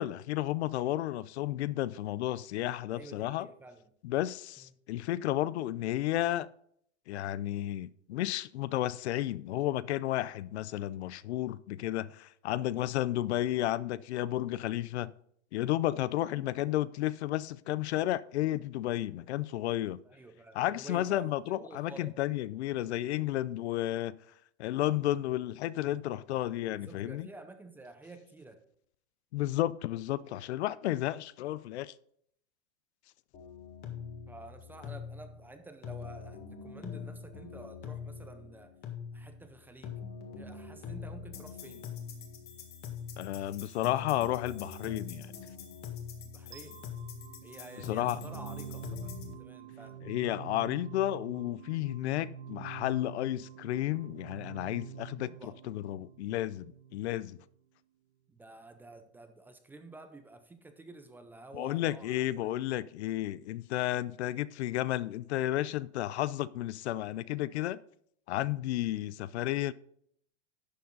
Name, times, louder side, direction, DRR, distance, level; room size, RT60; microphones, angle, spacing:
voice 1, 0.0-3.5 4.0-6.5 7.1-15.1 15.5-20.0 20.5-24.1 24.6-27.3 29.3-31.9 43.2-45.3 47.9-48.2 50.0-57.4 61.5-67.8 68.3-69.7, left 14 dB, 70° left, 0.5 m, -32 dB
voice 2, 2.9-3.9 4.6-4.7 20.0-22.1 26.7-28.6 34.3-38.7 39.1-40.0 40.3-41.9 46.2-46.9 47.4-50.0 55.2-55.6 58.3-62.5, right 2 dB, 5° right, 0.5 m, -50 dB
sound 1, 33.3-49.3, left 6 dB, 25° left, 1.7 m, -43 dB
sound 2, 46.5-57.5, right 8 dB, 85° right, 1.0 m, -47 dB
11.5 x 7.1 x 3.9 m
supercardioid pair, 150°, 35 cm